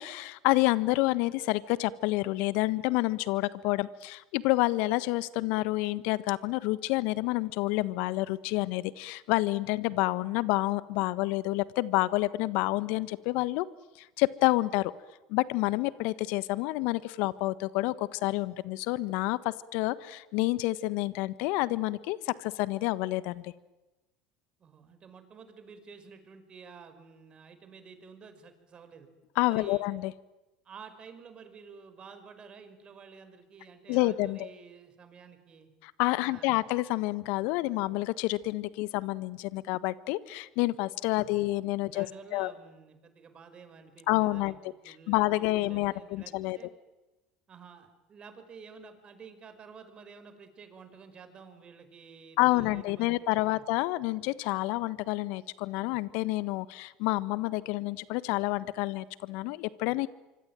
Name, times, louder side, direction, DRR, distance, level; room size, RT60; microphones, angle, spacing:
voice 1, 0.0-13.6 14.0-14.9 15.3-23.5 29.3-30.1 33.9-34.5 35.8-42.1 42.3-42.5 44.1-44.6 44.9-46.6 52.4-60.1, left 19 dB, 65° left, 17 dB, 1.4 m, -29 dB
voice 2, 24.6-29.1 29.5-29.9 30.6-35.7 36.2-36.6 41.1-41.4 41.8-46.7 47.5-53.6, right 5 dB, 35° right, 9 dB, 5.8 m, -51 dB
25.5 x 25.5 x 9.2 m, 1.0 s
hypercardioid pair, 85°, 3 cm